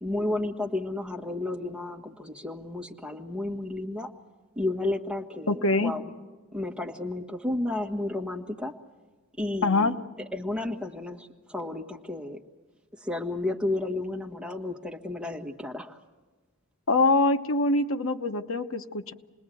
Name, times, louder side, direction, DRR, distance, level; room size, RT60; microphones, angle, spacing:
voice 1, 0.0-4.1 4.5-6.0 6.5-8.7 9.4-9.9 10.3-12.4 13.0-16.0, left 2 dB, 5° right, 2 dB, 1.5 m, -32 dB
voice 2, 5.5-5.9 9.6-9.9 16.9-19.1, left 2 dB, 75° left, 8 dB, 1.0 m, -24 dB
28.0 x 20.5 x 7.7 m, 1.3 s
head